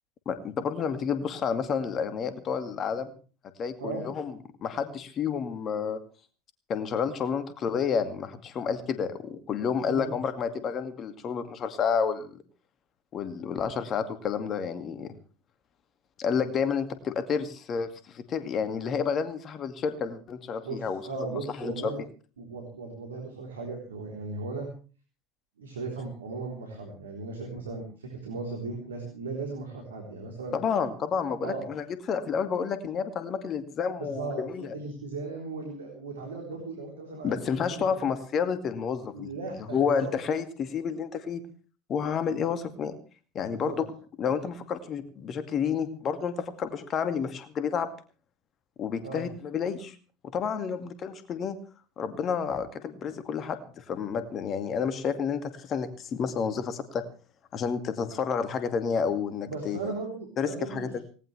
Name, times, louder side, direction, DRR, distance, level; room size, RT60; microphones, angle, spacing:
voice 1, 0.3-3.1 3.6-4.3 4.6-6.0 6.7-12.4 13.1-15.1 16.2-21.0 21.3-21.9 30.5-34.7 37.2-39.3 39.7-41.4 41.9-42.9 43.3-43.9 44.2-47.9 48.8-49.9 50.3-51.6 52.0-57.0 57.5-59.8 60.4-61.0, left 6 dB, 40° left, 9 dB, 2.2 m, -30 dB
voice 2, 20.6-22.0 22.4-24.7 25.6-30.6 31.4-31.7 34.0-37.3 37.7-38.1 39.1-40.1 43.4-43.8 49.0-49.3 50.7-50.8 59.5-60.9, right 3 dB, 80° right, 0 dB, 3.8 m, -37 dB
19.0 x 18.5 x 3.4 m, 0.38 s
figure-of-eight pair, 75°, 0 cm